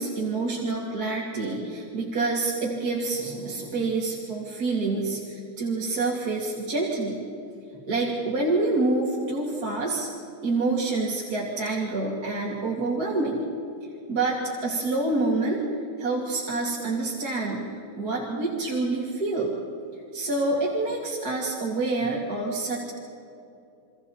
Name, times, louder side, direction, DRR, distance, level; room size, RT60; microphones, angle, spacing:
voice 1, 0.0-7.2 7.8-10.1 10.4-13.5 14.1-15.6 16.0-17.7 18.0-19.5 20.1-22.9, right 3 dB, 45° right, -5 dB, 3.0 m, -27 dB
30.0 x 24.0 x 4.3 m, 2.7 s
omnidirectional pair, 2.4 m